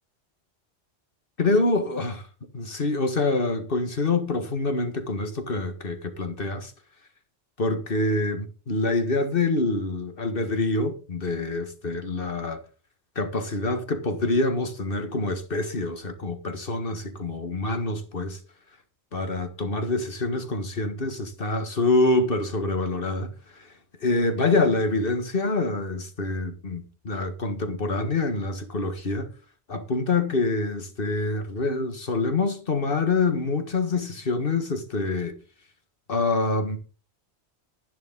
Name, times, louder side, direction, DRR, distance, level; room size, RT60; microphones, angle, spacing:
voice 1, 1.4-2.3 2.5-6.7 7.6-12.6 13.1-18.4 19.1-23.3 23.6-23.7 24.0-29.3 29.7-35.3 36.1-36.8, left 3 dB, 55° left, 1.7 m, -26 dB
11.0 x 11.0 x 3.9 m
omnidirectional pair, 1.2 m